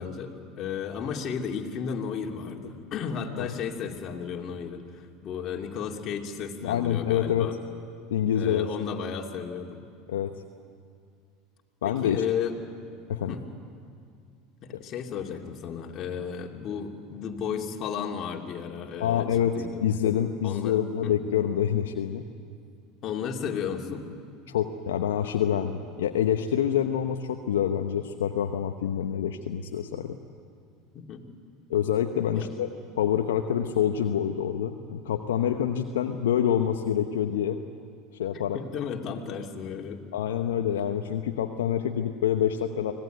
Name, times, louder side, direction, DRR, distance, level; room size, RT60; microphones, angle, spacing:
voice 1, 0.0-7.6 8.3-9.8 11.8-12.6 13.3-13.4 14.6-19.3 19.5-19.8 20.4-21.2 23.0-24.1 30.9-31.2 32.3-32.5 38.5-40.0, left 7 dB, 45° left, 1 dB, 2.7 m, -34 dB
voice 2, 6.6-7.5 8.1-8.7 9.0-9.1 10.1-10.3 11.8-12.2 13.1-13.3 14.7-14.8 19.0-22.2 24.5-30.2 31.7-32.7 33.0-37.6 38.2-38.6 40.1-42.9, left 9 dB, 80° left, 5 dB, 1.0 m, -26 dB
25.0 x 18.0 x 9.3 m, 2.2 s
hypercardioid pair, 85°, 0 cm